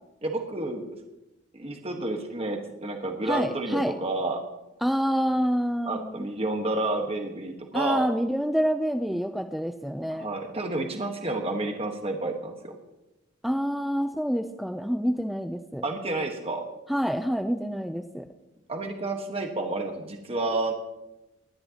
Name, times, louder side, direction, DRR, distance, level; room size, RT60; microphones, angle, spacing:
voice 1, 0.2-0.8 1.5-4.4 5.9-8.1 10.1-12.8 15.8-16.6 18.7-20.7, right 2 dB, 30° right, 3 dB, 1.3 m, -30 dB
voice 2, 3.2-3.9 4.8-6.3 7.7-10.3 13.4-15.8 16.9-18.3, equal, ahead, 6 dB, 0.4 m, -27 dB
21.0 x 11.0 x 2.9 m, 0.96 s
head